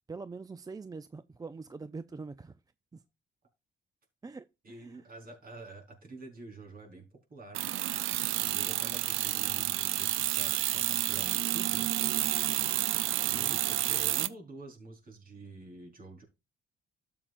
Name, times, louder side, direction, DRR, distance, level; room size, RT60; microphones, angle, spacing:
voice 1, 0.1-2.6 2.9-3.0 4.2-5.0 13.3-13.6, right 4 dB, 20° right, 0.5 m, -44 dB
voice 2, 4.6-7.9 8.3-12.1 13.2-16.2, right 2 dB, 45° right, 4.3 m, -48 dB
sound 1, 7.5-14.3, right 15 dB, 85° right, 0.5 m, -30 dB
12.5 x 7.5 x 2.5 m
cardioid pair, 90°, 20 cm